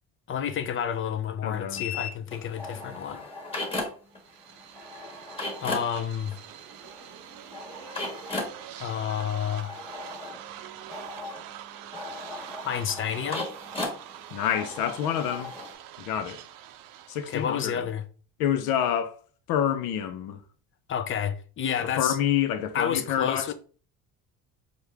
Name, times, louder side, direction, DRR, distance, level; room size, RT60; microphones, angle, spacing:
voice 1, 0.3-3.2 5.6-6.3 8.8-9.8 12.6-13.5 17.3-18.0 20.9-22.2 22.7-23.5, left 8 dB, 35° left, 0.5 m, -30 dB
voice 2, 1.4-1.9 14.3-15.5 16.0-16.4 17.1-17.9 18.4-19.2 19.5-20.4 21.8-23.5, left 9 dB, 85° left, 0.7 m, -28 dB
sound 1, 1.8-4.2 4.5-15.7, left 2 dB, 15° left, 1.6 m, -37 dB
sound 2, 4.1-17.7, right 11 dB, 75° right, 0.5 m, -45 dB
4.7 x 2.5 x 3.3 m
cardioid pair, 115°, 34 cm